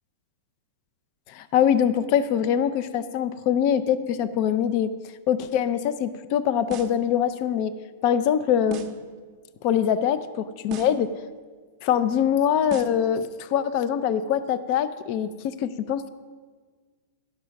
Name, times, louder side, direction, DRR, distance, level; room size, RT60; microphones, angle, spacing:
voice 1, 1.3-4.9 5.3-7.7 8.0-8.8 9.6-11.2 11.8-16.1, left 9 dB, 45° left, 14 dB, 0.4 m, -23 dB
sound 1, 6.7-7.1 8.7-9.1 10.7-11.1 12.7-13.1, right 5 dB, 30° right, 0.7 m, -37 dB
11.0 x 6.4 x 5.8 m, 1.5 s
supercardioid pair, 150°, 0 cm